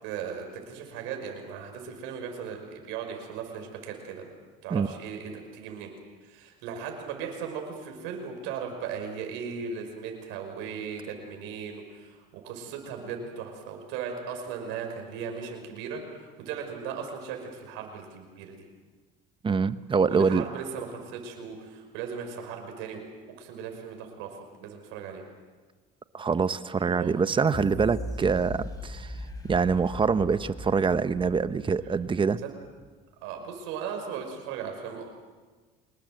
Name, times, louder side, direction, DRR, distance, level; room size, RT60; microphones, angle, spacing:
voice 1, 0.0-4.3 4.6-5.9 6.2-18.7 20.1-25.2 26.9-27.4 32.4-32.5 33.2-35.1, right 6 dB, 85° right, 3 dB, 5.8 m, -37 dB
voice 2, 19.4-20.4 26.1-29.1 29.5-32.4, right 5 dB, 25° right, 13 dB, 1.0 m, -25 dB
sound 1, 27.5-32.4 32.8-32.9, left 1 dB, 20° left, 5.2 m, -39 dB
26.0 x 21.0 x 7.8 m, 1.4 s
cardioid pair, 105°, 20 cm